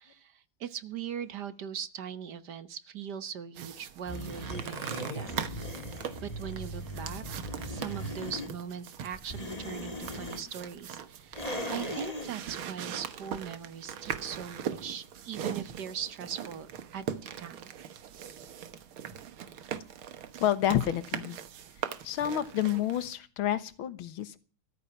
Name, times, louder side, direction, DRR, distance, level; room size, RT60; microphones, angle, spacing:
voice 1, 0.0-5.4 6.2-7.2 7.7-17.0 17.4-17.7, right 8 dB, 60° right, 13 dB, 1.5 m, -40 dB
sound 1, 3.6-23.1, right 8 dB, 90° right, 2.1 m, -41 dB
sound 2, 4.1-8.5 9.1-10.4 11.3-12.3, equal, 20° left, 2.3 m, -38 dB
voice 2, 20.4-21.4 22.0-24.4, left 11 dB, 90° left, 14 dB, 2.0 m, -29 dB
14.0 x 13.5 x 5.8 m, 0.37 s
omnidirectional pair, 2.2 m